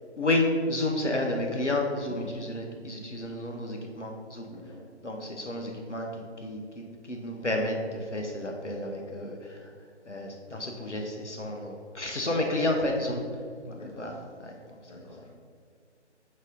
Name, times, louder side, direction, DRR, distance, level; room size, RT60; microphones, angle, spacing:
voice 1, 0.2-4.5 5.0-6.1 6.4-9.7 10.1-13.2 13.7-15.1, left 1 dB, 90° left, 1 dB, 1.1 m, -31 dB
voice 2, 4.5-4.8 13.7-14.1 14.9-15.3, left 2 dB, 35° left, -3 dB, 1.4 m, -45 dB
6.5 x 3.8 x 5.2 m, 2.2 s
figure-of-eight pair, 145°, 34 cm